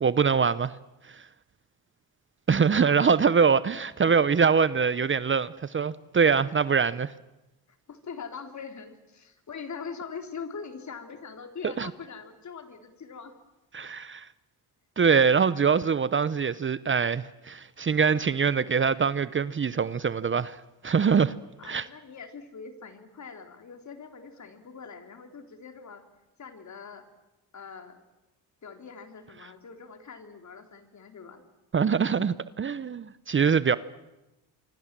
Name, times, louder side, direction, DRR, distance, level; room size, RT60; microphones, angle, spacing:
voice 1, 0.0-0.7 1.1-1.2 2.5-7.1 11.6-11.9 13.7-14.3 15.0-21.3 21.6-21.9 31.7-33.8, right 6 dB, 30° right, 0.8 m, -24 dB
voice 2, 2.8-3.2 7.9-13.3 21.6-26.0 26.4-27.0 27.5-28.0 28.6-31.4, left 5 dB, 45° left, 3.6 m, -42 dB
26.0 x 24.5 x 7.5 m
cardioid pair, 85°, 38 cm